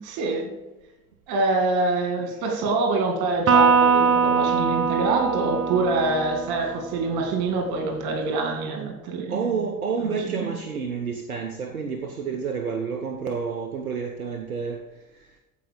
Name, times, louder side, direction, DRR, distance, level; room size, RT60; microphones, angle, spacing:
voice 1, 0.0-0.5 1.3-9.4 10.0-10.5, right 3 dB, 60° right, 3 dB, 2.5 m, -25 dB
Electric guitar, 3.5-7.0, right 5 dB, 35° right, 1.5 m, -21 dB
voice 2, 9.3-15.4, right 5 dB, 90° right, 5 dB, 0.7 m, -29 dB
14.5 x 5.3 x 5.2 m, 1.1 s
figure-of-eight pair, 55°, 42 cm